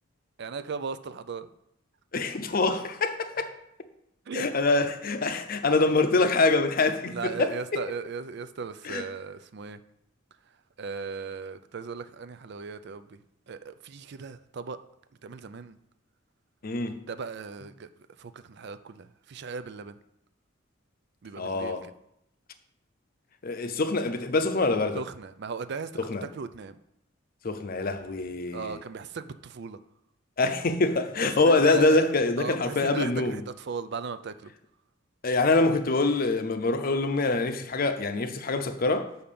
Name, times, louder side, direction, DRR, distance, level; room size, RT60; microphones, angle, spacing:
voice 1, 0.4-1.5 4.3-4.5 7.1-9.8 10.8-13.2 13.5-14.8 15.2-15.8 17.1-17.9 18.2-20.0 21.2-21.9 24.9-26.8 28.5-29.8 31.2-32.1 32.4-34.5, right 5 dB, 55° right, 0.5 m, -37 dB
voice 2, 2.1-3.5 4.3-7.5 8.8-9.0 16.6-16.9 21.4-21.9 23.4-25.0 26.0-26.3 27.4-28.8 30.4-33.4 35.2-39.1, left 3 dB, 45° left, 0.6 m, -25 dB
5.7 x 5.5 x 6.8 m
head